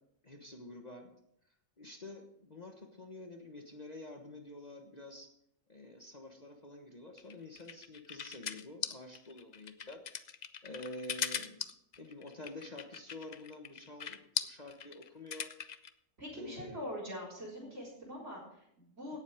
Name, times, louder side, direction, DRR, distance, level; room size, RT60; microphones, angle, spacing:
voice 1, 0.2-1.1 1.8-5.3 5.7-10.0 10.6-11.7 12.0-15.5 16.3-16.9, left 2 dB, 30° left, 3 dB, 1.3 m, -48 dB
sound 1, 7.2-15.9, left 7 dB, 65° left, 0.4 m, -40 dB
voice 2, 16.2-19.2, equal, 50° right, -7 dB, 4.6 m, -43 dB
17.0 x 7.4 x 5.0 m, 0.74 s
omnidirectional pair, 1.5 m